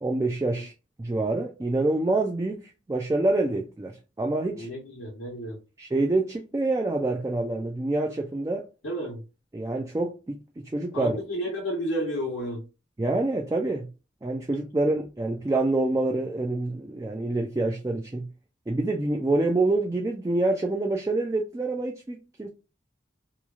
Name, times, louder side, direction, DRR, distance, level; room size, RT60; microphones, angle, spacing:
voice 1, 0.0-0.7 1.0-4.7 5.8-8.6 9.5-11.2 13.0-13.9 14.2-18.3 18.7-22.5, right 2 dB, 15° right, 0.3 m, -26 dB
voice 2, 4.5-5.6 8.8-9.2 10.9-12.7, equal, 85° left, 0.9 m, -31 dB
3.0 x 2.2 x 2.4 m
head